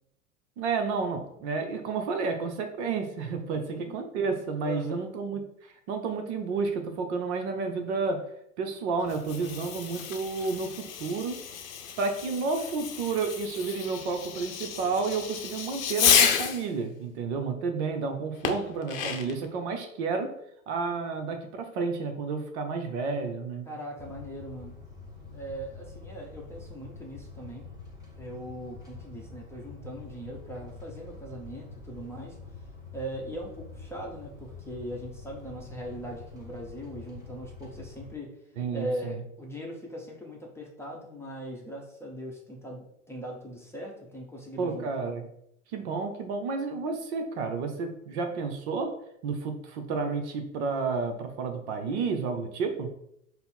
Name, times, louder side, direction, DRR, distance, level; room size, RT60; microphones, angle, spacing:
voice 1, 0.6-5.4 5.9-8.3 8.6-11.4 12.0-20.3 20.7-23.7 38.6-39.2 44.6-45.3 45.7-48.9 49.2-52.9, right 4 dB, 55° right, 6 dB, 0.7 m, -31 dB
voice 2, 4.6-5.1 23.7-24.7 25.3-27.7 28.2-32.4 32.9-38.3 38.7-45.1, equal, 5° left, -2 dB, 0.7 m, -40 dB
Fireworks, 9.0-16.7 18.4-19.5, left 8 dB, 70° left, 0.7 m, -30 dB
sound 1, 24.0-38.2, left 4 dB, 10° right, 1.4 m, -46 dB
5.2 x 2.0 x 4.3 m, 0.75 s
figure-of-eight pair, 90°, 42 cm